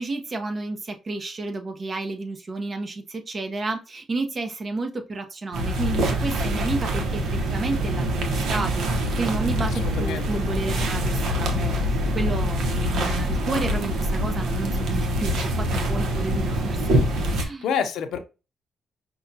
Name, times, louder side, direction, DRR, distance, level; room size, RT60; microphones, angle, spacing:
voice 1, 0.0-16.9 17.4-17.7, right 3 dB, 35° right, 0.9 m, -31 dB
sound 1, 5.5-17.4, equal, 70° right, 0.9 m, -25 dB
voice 2, 9.8-10.4 17.4-18.2, left 7 dB, 80° left, 0.6 m, -28 dB
5.4 x 2.3 x 2.7 m
cardioid pair, 90°, 0 cm